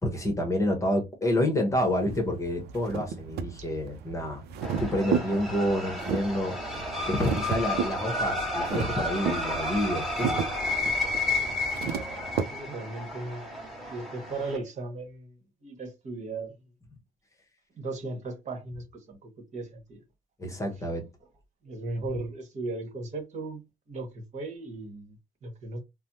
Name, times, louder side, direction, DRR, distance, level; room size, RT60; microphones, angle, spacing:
voice 1, 0.0-4.4 4.8-6.6 7.1-10.5 20.4-21.0, left 1 dB, 15° left, 1.0 m, -28 dB
sound 1, 1.7-12.4, right 7 dB, 75° right, 0.6 m, -34 dB
sound 2, 4.6-14.6, left 2 dB, ahead, 1.2 m, -32 dB
voice 2, 12.4-13.6 13.9-16.6 17.8-20.0 21.6-25.8, right 2 dB, 45° right, 1.2 m, -37 dB
3.3 x 2.1 x 2.7 m
cardioid pair, 110°, 17 cm